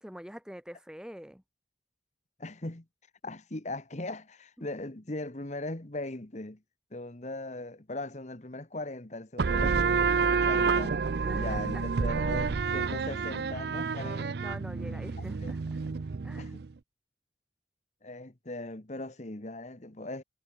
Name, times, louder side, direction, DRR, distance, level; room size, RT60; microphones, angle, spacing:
voice 1, 0.0-1.4 11.1-11.8 14.4-15.8 16.2-16.5, equal, 5° right, 1.1 m, -45 dB
voice 2, 2.4-2.8 3.2-6.6 6.9-9.8 10.1-11.0 11.3-14.4 14.9-15.0 15.4-15.5 16.4-16.6 18.0-20.2, left 2 dB, 40° left, 1.4 m, -39 dB
sound 1, 9.4-16.7, right 5 dB, 60° right, 0.5 m, -29 dB
head